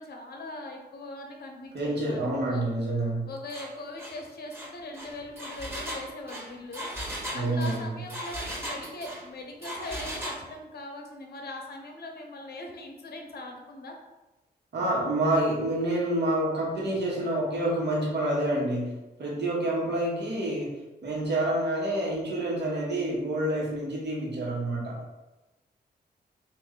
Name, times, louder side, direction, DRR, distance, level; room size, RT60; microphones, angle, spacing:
voice 1, 0.0-2.6 3.2-6.9 7.3-14.0 19.4-19.7, left 2 dB, 65° left, 2 dB, 0.7 m, -41 dB
voice 2, 1.7-3.3 7.3-7.9 14.7-18.9 19.2-20.7 21.0-25.0, right 1 dB, 75° right, -4 dB, 1.1 m, -28 dB
Engine, 3.5-3.7 4.0-4.2 4.5-9.2 9.6-10.4, equal, 15° right, 0.9 m, -37 dB
3.2 x 2.5 x 3.8 m, 1.1 s
cardioid pair, 90°, 18 cm